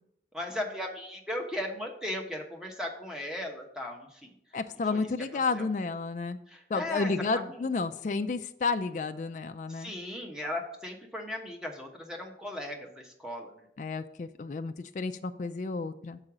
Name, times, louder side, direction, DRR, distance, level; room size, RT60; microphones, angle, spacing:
voice 1, 0.3-4.3 4.9-5.1 5.5-5.7 6.5-7.7 9.7-13.7, left 1 dB, 5° right, 1 dB, 1.0 m, -37 dB
voice 2, 4.5-6.4 6.7-9.9 13.8-16.2, left 4 dB, 45° left, 8 dB, 0.3 m, -31 dB
6.5 x 4.8 x 6.0 m, 0.76 s
head